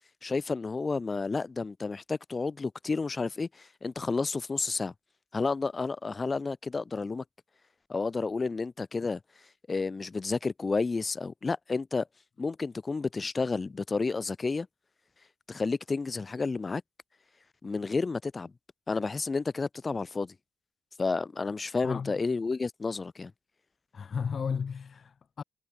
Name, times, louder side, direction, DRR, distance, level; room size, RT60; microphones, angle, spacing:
voice 1, 0.2-4.9 5.3-7.2 7.9-9.2 9.7-12.1 12.4-14.7 15.5-16.8 17.6-18.5 18.9-20.3 21.0-23.3, left 4 dB, 30° left, 1.6 m, -31 dB
voice 2, 23.9-25.4, left 6 dB, 45° left, 0.8 m, -34 dB
cardioid pair, 90°, 0 cm